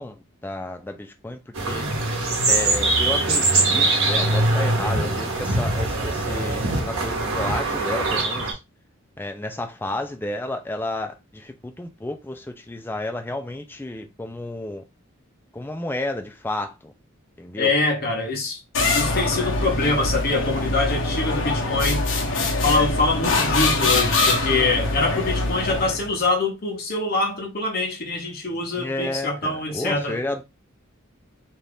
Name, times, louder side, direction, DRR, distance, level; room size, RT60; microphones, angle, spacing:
voice 1, 0.0-1.9 2.5-8.6 9.2-14.8 15.5-16.9 17.4-17.7 28.8-30.4, left 1 dB, 10° left, 0.3 m, -31 dB
sound 1, 1.5-8.5, right 2 dB, 70° right, 1.0 m, -22 dB
voice 2, 17.6-18.6 18.9-22.0 22.6-30.2, left 3 dB, 45° left, 1.0 m, -24 dB
sound 2, 18.8-26.2, left 2 dB, 65° left, 0.9 m, -23 dB
2.7 x 2.4 x 3.3 m
head